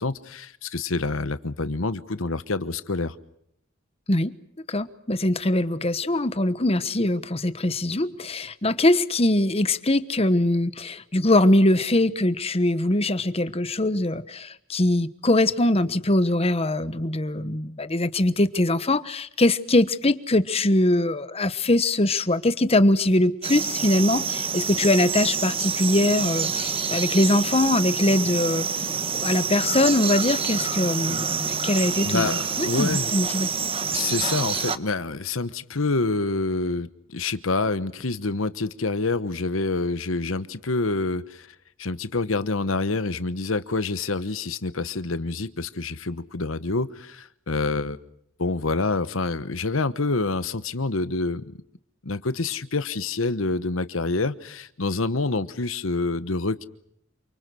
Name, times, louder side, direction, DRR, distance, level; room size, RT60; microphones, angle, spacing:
voice 1, 0.0-3.1 32.0-33.1 33.9-41.5 41.8-48.0 48.4-51.4 52.0-56.7, left 3 dB, 80° left, 13 dB, 1.2 m, -27 dB
voice 2, 4.7-28.8 29.2-33.5, left 1 dB, 30° left, 13 dB, 1.2 m, -22 dB
sound 1, 23.4-34.8, right 6 dB, 30° right, 1.2 m, -27 dB
29.0 x 25.0 x 6.3 m, 0.73 s
head